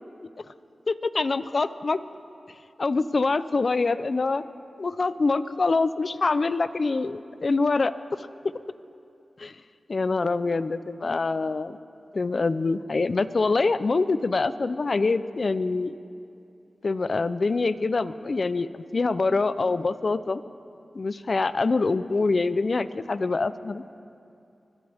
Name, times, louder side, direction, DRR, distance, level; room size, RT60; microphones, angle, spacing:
voice 1, 0.9-2.0 2.8-4.4 4.8-7.9 9.4-9.6 9.9-11.8 12.1-15.9 16.8-20.4 20.9-23.8, left 3 dB, 55° left, 14 dB, 0.5 m, -25 dB
24.5 x 17.0 x 3.5 m, 2.6 s
cardioid pair, 60°, 0 cm